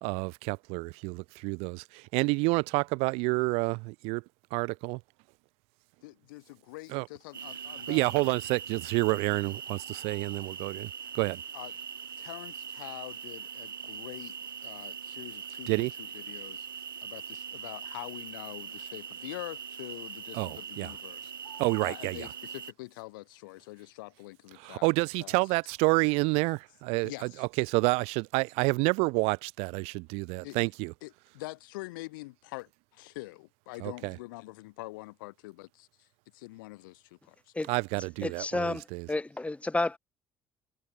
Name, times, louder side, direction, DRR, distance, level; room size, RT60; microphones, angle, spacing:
voice 1, 0.0-4.2 4.5-5.0 6.9-7.0 7.9-11.4 15.7-15.9 20.3-20.9 21.6-22.3 24.6-30.9 33.8-34.1 37.7-39.0, right 28 dB, 65° right, 0.6 m, -29 dB
voice 2, 6.0-8.3 11.5-11.8 12.2-14.4 14.6-21.6 21.8-24.9 25.2-25.6 27.0-27.5 30.4-30.6 31.0-37.5, left 22 dB, 75° left, 5.5 m, -45 dB
sound 1, 7.3-22.7, right 7 dB, 90° right, 1.2 m, -42 dB
voice 3, 38.2-40.0, left 2 dB, 10° left, 1.1 m, -31 dB
hypercardioid pair, 55°, 11 cm